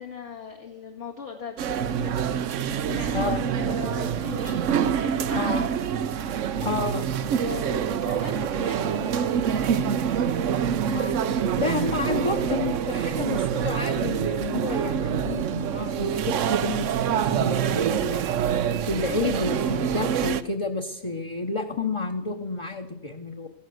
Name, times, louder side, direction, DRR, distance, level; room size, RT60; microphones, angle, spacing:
voice 1, 0.0-4.6 5.0-5.6 7.4-10.1 11.1-12.0 12.4-12.5, left 6 dB, 70° left, -1 dB, 2.4 m, -39 dB
sound 1, 1.6-20.4, right 8 dB, 85° right, 1.1 m, -26 dB
voice 2, 3.1-3.4 5.4-5.7 6.6-7.1 10.9-11.3 11.6-16.9 17.1-18.3 18.9-23.5, left 3 dB, 25° left, 3 dB, 1.0 m, -30 dB
14.5 x 11.5 x 7.8 m, 0.80 s
omnidirectional pair, 1.2 m